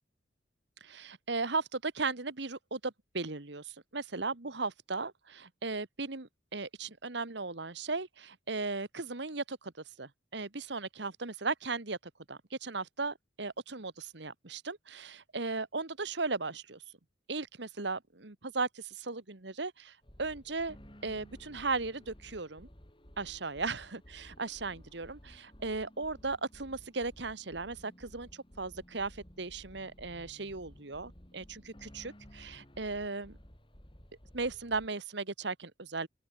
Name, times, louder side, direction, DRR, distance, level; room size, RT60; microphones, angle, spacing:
voice 1, 0.8-9.7 10.0-12.0 12.3-16.8 17.3-19.9 20.2-20.8 21.0-22.7 23.2-33.4 34.3-36.1, right 3 dB, 65° right, 1.6 m, -37 dB
sound 1, 20.0-34.9, equal, 25° left, 3.5 m, -55 dB
open air
head